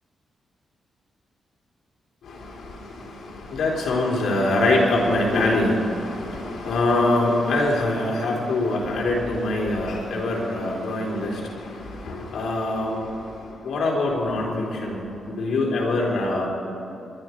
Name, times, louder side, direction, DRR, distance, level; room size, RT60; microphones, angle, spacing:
voice 1, 2.2-16.5, left 2 dB, 80° left, -2 dB, 3.8 m, -24 dB
22.5 x 11.5 x 4.6 m, 2.8 s
cardioid pair, 105°, 0 cm